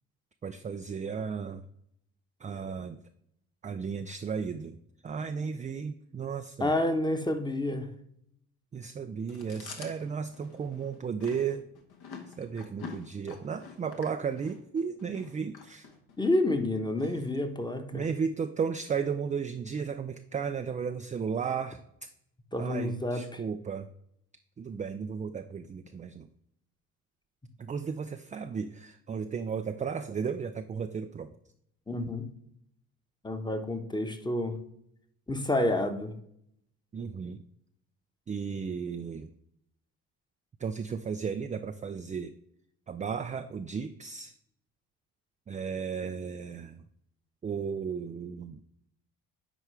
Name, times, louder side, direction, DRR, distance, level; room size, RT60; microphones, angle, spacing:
voice 1, 0.4-1.6 2.4-3.0 3.6-4.8 5.0-6.8 8.7-11.6 12.4-15.9 17.9-22.1 22.6-23.9 24.6-26.3 27.6-31.3 36.9-37.4 38.3-39.3 40.6-42.3 42.9-44.3 45.5-46.8 47.4-48.6, right 6 dB, 20° right, 0.4 m, -34 dB
voice 2, 6.6-7.9 16.2-18.1 22.5-23.4 31.9-32.3 33.2-34.6 35.3-36.2, left 1 dB, 10° left, 1.1 m, -29 dB
Chewing mastication, 9.3-16.3, left 5 dB, 55° left, 1.4 m, -47 dB
9.9 x 4.4 x 3.3 m
hypercardioid pair, 50°, 44 cm